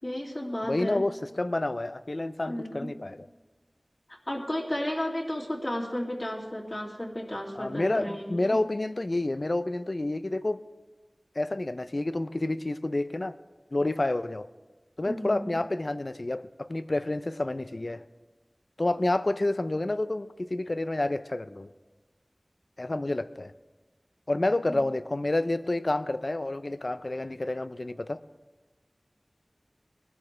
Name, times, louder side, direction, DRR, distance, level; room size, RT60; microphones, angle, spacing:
voice 1, 0.0-1.0 2.5-2.9 4.3-8.6 15.1-15.6 24.7-24.8, left 1 dB, 45° left, -2 dB, 2.5 m, -33 dB
voice 2, 0.6-3.3 7.6-10.6 11.4-13.3 13.7-14.5 15.0-18.0 18.8-21.7 22.8-23.5 24.3-28.2, left 2 dB, 60° left, 13 dB, 0.5 m, -29 dB
20.5 x 12.0 x 3.2 m, 1.3 s
wide cardioid pair, 40°, 0 cm